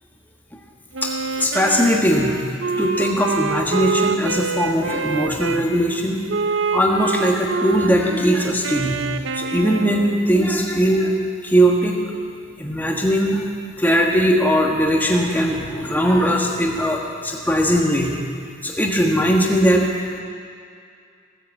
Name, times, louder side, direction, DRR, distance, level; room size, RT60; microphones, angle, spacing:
Wind instrument woodwind instrument, 0.9-5.6 6.3-10.2, right 5 dB, 60° right, 0.7 m, -26 dB
voice 1, 1.4-2.4 2.8-6.2 6.7-9.0 9.3-11.1 11.4-12.0 12.6-13.4 13.8-18.2 18.6-19.9, equal, 10° left, -1 dB, 1.5 m, -19 dB
16.5 x 9.9 x 8.2 m, 2.3 s
head